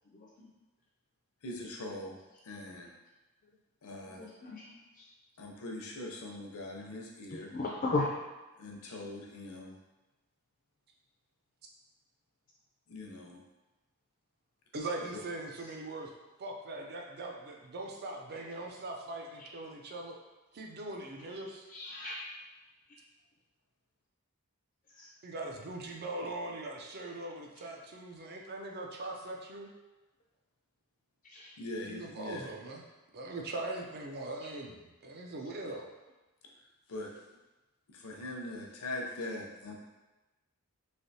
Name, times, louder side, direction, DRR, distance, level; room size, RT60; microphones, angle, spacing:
voice 1, 1.4-2.1 2.4-2.9 3.8-4.2 5.4-7.5 8.6-9.7 12.9-13.4 15.1-15.2 31.6-32.5 36.9-37.1 37.9-39.7, left 2 dB, 85° left, 0 dB, 0.6 m, -41 dB
voice 2, 4.0-5.0 7.3-8.2 8.8-8.9 21.7-22.2 25.0-25.1 31.2-31.5, left 2 dB, 40° left, -2 dB, 0.4 m, -36 dB
voice 3, 14.7-16.1 16.4-20.2 20.5-21.7 25.2-29.7 31.9-32.8 33.1-35.9, right 2 dB, 50° right, 1 dB, 0.5 m, -41 dB
3.3 x 2.7 x 2.7 m, 1.1 s
head